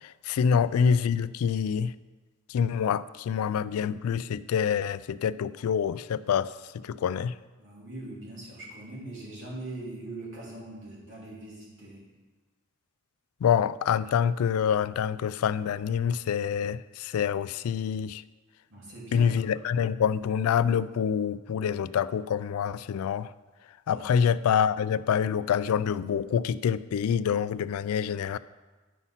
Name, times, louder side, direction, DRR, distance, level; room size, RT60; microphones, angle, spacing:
voice 1, 0.2-1.9 2.5-6.5 6.8-7.3 13.4-18.2 19.1-23.3 23.9-28.4, left 7 dB, 90° left, 17 dB, 0.3 m, -26 dB
voice 2, 7.6-12.0 18.7-19.5 23.9-24.1, right 2 dB, 60° right, -4 dB, 2.8 m, -41 dB
9.3 x 5.6 x 5.7 m, 1.3 s
head